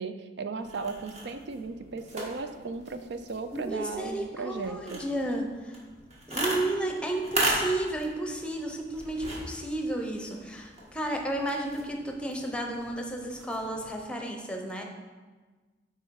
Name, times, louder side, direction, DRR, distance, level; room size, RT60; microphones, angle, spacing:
voice 1, 0.0-5.0, right 4 dB, 65° right, 9 dB, 0.4 m, -36 dB
sound 1, 0.6-14.0, right 1 dB, 35° right, 1.6 m, -38 dB
voice 2, 3.5-5.8 6.3-14.8, right 1 dB, 5° left, 2 dB, 0.8 m, -32 dB
8.9 x 4.4 x 4.7 m, 1.3 s
head